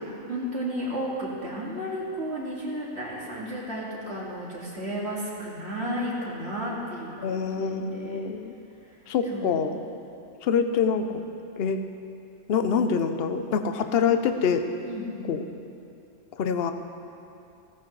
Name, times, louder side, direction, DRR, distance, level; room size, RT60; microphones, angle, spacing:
voice 1, 0.3-8.3 9.3-9.7 14.9-15.3, equal, 45° right, -5 dB, 2.5 m, -33 dB
voice 2, 7.2-8.5 9.1-9.8 10.4-11.2 11.6-11.8 12.5-14.6 15.3-15.4 16.4-16.7, left 6 dB, 55° left, 7 dB, 0.8 m, -25 dB
16.5 x 15.0 x 3.2 m, 2.7 s
omnidirectional pair, 1.5 m